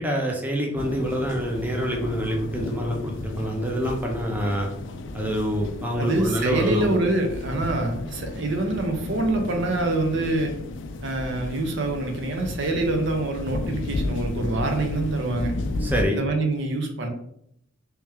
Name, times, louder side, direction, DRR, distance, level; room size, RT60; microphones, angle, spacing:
voice 1, 0.0-4.7 5.1-7.0 15.8-16.2, equal, 10° right, 0 dB, 0.5 m, -26 dB
sound 1, 0.8-16.0, left 2 dB, 60° left, 0.4 m, -33 dB
voice 2, 6.0-10.5 11.0-15.5 16.1-17.1, right 2 dB, 60° right, 3 dB, 0.7 m, -25 dB
3.2 x 3.1 x 3.5 m, 0.72 s
head